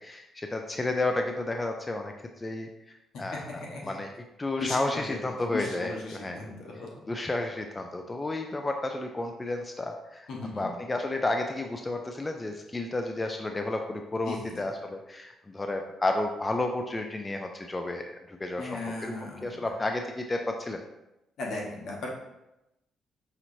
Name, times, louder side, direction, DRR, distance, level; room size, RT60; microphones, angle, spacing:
voice 1, 0.0-2.7 3.2-3.4 3.8-4.1 4.4-6.4 7.1-10.3 10.6-19.1 19.4-20.8, left 2 dB, 20° left, 4 dB, 0.4 m, -31 dB
voice 2, 3.3-3.9 4.6-5.2 5.4-6.9 10.3-10.7 14.2-14.7 18.6-19.6 21.4-22.2, left 3 dB, 75° left, -2 dB, 1.1 m, -37 dB
5.6 x 3.0 x 2.7 m, 0.91 s
cardioid pair, 90°, 0 cm